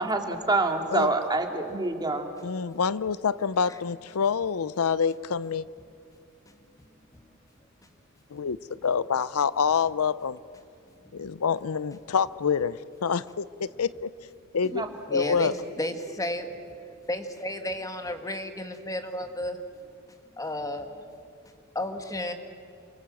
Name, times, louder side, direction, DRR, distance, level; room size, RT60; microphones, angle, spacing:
voice 1, 0.0-2.3 14.7-14.9, right 2 dB, 20° right, 4 dB, 2.3 m, -26 dB
voice 2, 2.4-5.7 8.3-8.6 8.8-10.4 11.1-14.1 14.5-15.5, left 6 dB, 85° left, 18 dB, 0.6 m, -27 dB
voice 3, 15.1-16.5 17.1-19.6 20.3-20.9 21.8-22.3, left 1 dB, 15° left, 7 dB, 1.7 m, -32 dB
28.0 x 25.5 x 7.7 m, 2.5 s
head